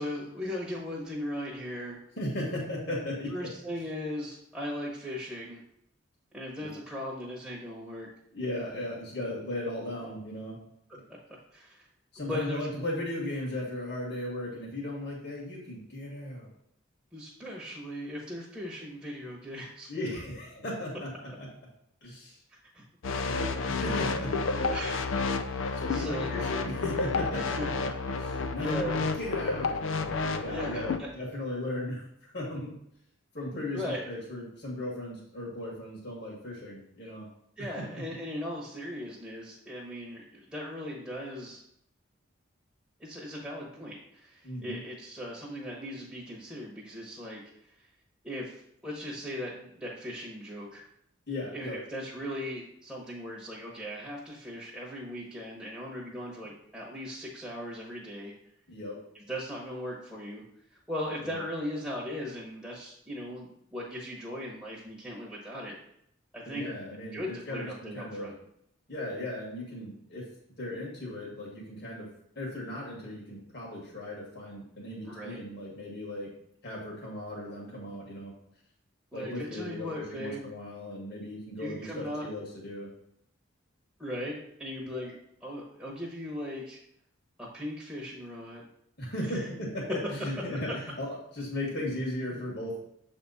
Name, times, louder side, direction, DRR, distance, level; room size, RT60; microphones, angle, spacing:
voice 1, 0.0-2.0 3.3-5.6 6.3-8.1 11.1-11.2 11.5-11.9 12.3-12.7 17.1-19.9 22.7-22.8 24.5-25.6 25.9-26.3 27.4-27.9 28.6-29.0 30.4-31.1 33.7-34.1 37.6-41.6 43.0-47.7 48.2-48.6 48.8-50.8 51.5-58.3 59.1-60.4 60.9-65.8 66.3-66.7 67.1-68.3 75.1-75.4 79.1-80.4 81.6-82.3 84.0-86.8 87.4-88.7 89.3-89.5 90.7-90.8, left 1 dB, 5° right, -5 dB, 1.1 m, -38 dB
voice 2, 2.2-3.5 6.6-6.7 8.3-10.6 10.9-11.0 12.1-16.5 19.9-21.5 22.0-22.4 23.2-24.3 25.7-27.7 28.1-32.7 33.3-37.3 37.7-38.0 44.4-44.8 51.3-51.8 58.7-59.0 61.2-61.4 66.5-68.3 68.9-70.2 70.6-72.1 72.4-76.3 76.6-78.3 79.1-82.9 89.0-92.8, left 1 dB, 55° left, -4 dB, 1.9 m, -37 dB
sound 1, 23.0-31.0, left 4 dB, 75° left, 0.5 m, -30 dB
7.4 x 3.6 x 4.1 m, 0.73 s
head